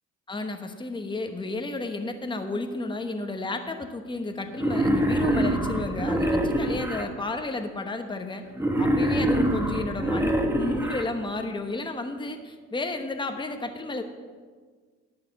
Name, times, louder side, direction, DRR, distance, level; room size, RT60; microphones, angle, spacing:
voice 1, 0.3-8.4 8.8-14.0, left 2 dB, 15° left, 6 dB, 1.0 m, -32 dB
Wild animals, 4.5-7.0 8.5-11.0, right 1 dB, 10° right, 1.3 m, -25 dB
11.0 x 5.8 x 7.5 m, 1.5 s
cardioid pair, 90°, 30 cm